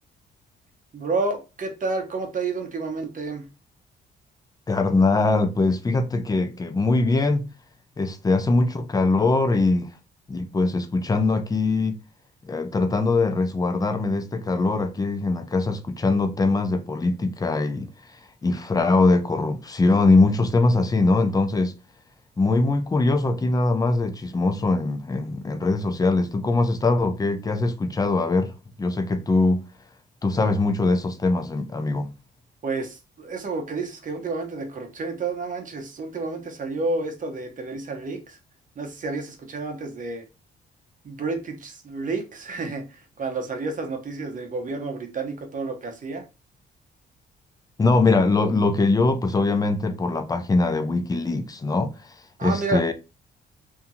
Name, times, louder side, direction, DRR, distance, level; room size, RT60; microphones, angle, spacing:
voice 1, 0.9-3.5 32.6-38.4 38.8-40.2 41.0-46.2 52.4-52.8, right 3 dB, 40° right, 0.9 m, -30 dB
voice 2, 4.7-7.5 8.0-9.9 10.3-12.0 12.4-17.9 18.4-21.8 22.4-28.5 28.8-29.7 30.2-32.2 47.8-51.9 52.4-52.9, left 3 dB, 20° left, 0.5 m, -22 dB
2.7 x 2.7 x 2.3 m
cardioid pair, 90°, 20 cm